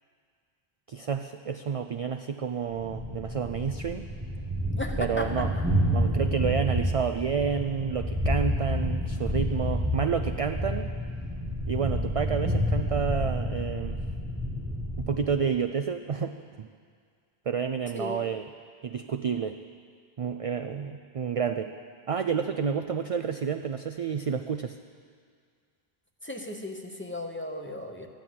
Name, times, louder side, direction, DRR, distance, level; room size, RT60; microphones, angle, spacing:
voice 1, 0.9-4.1 5.0-5.5 5.8-10.9 11.7-14.0 15.0-16.7 17.5-18.5 18.8-19.6 20.2-21.7 22.1-24.8, right 6 dB, 55° right, 8 dB, 0.4 m, -30 dB
Thunder, 2.8-15.4, equal, 10° right, 1.4 m, -29 dB
voice 2, 4.8-5.4 17.9-18.2 26.2-28.1, left 1 dB, 10° left, 2 dB, 1.0 m, -35 dB
14.0 x 10.5 x 7.5 m, 2.1 s
omnidirectional pair, 1.1 m